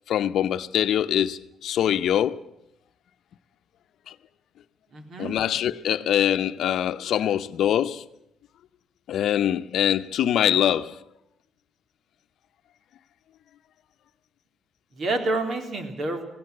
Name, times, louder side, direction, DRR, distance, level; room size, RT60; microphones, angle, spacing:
voice 1, 0.1-2.4 5.2-8.0 9.1-11.0, left 10 dB, 75° left, 0.8 m, -23 dB
voice 2, 4.9-5.4 14.9-16.3, right 2 dB, 55° right, 3.8 m, -28 dB
17.5 x 17.0 x 9.7 m
cardioid pair, 90°, 0 cm